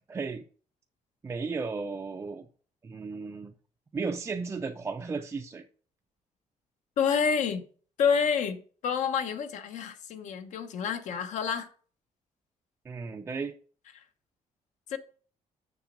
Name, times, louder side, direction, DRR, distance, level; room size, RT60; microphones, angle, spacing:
voice 1, 0.1-0.4 1.2-2.5 2.8-3.5 3.9-5.6 12.8-13.5, right 4 dB, 20° right, 0.4 m, -34 dB
voice 2, 7.0-7.6 8.0-11.7 14.9-15.0, left 6 dB, 65° left, 1.0 m, -28 dB
7.2 x 6.1 x 5.3 m
cardioid pair, 180°, 14 cm